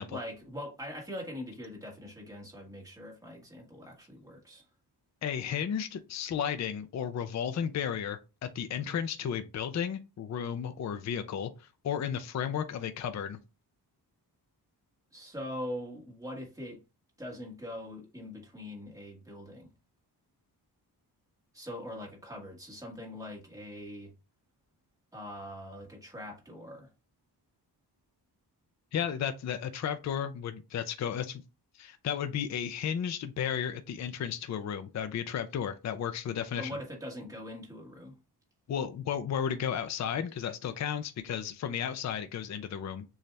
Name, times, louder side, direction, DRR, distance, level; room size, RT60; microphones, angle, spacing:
voice 1, 0.1-4.6 15.1-16.8 17.2-19.7 21.5-24.1 25.1-26.9 36.6-38.1, left 1 dB, 10° right, 1.6 m, -42 dB
voice 2, 5.2-13.4 28.9-31.4 31.7-36.7 38.7-43.0, left 8 dB, 45° left, 0.4 m, -33 dB
6.6 x 2.4 x 3.2 m
wide cardioid pair, 170°, 40 cm